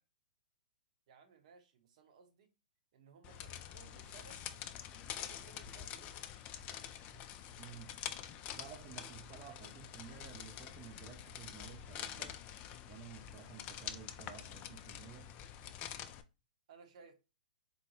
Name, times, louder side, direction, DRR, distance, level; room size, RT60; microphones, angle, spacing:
voice 1, 1.1-2.5 2.9-4.4 4.9-6.1 16.7-17.1, right 6 dB, 55° right, 0.9 m, -60 dB
sound 1, 3.2-16.2, left 10 dB, 30° left, 0.4 m, -47 dB
voice 2, 7.6-8.0 8.6-12.4 12.9-15.3, right 8 dB, 30° right, 0.5 m, -53 dB
4.1 x 2.2 x 3.0 m
figure-of-eight pair, 115°, 5 cm